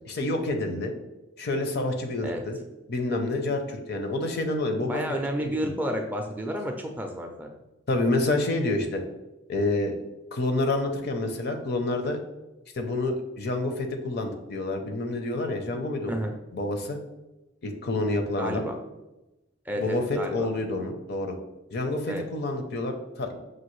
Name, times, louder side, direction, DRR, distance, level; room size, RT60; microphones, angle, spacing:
voice 1, 0.0-0.9 1.4-2.6 2.9-5.0 5.4-5.5 7.9-9.0 9.5-9.9 10.3-12.2 12.8-16.2 16.5-17.0 17.6-18.6 19.8-21.4 21.7-23.4, left 2 dB, 55° left, 5 dB, 0.5 m, -28 dB
voice 2, 4.9-7.5 16.1-16.3 18.4-18.7 19.7-20.5 22.1-22.2, equal, 10° right, 2 dB, 0.4 m, -31 dB
6.1 x 2.5 x 3.1 m, 0.99 s
head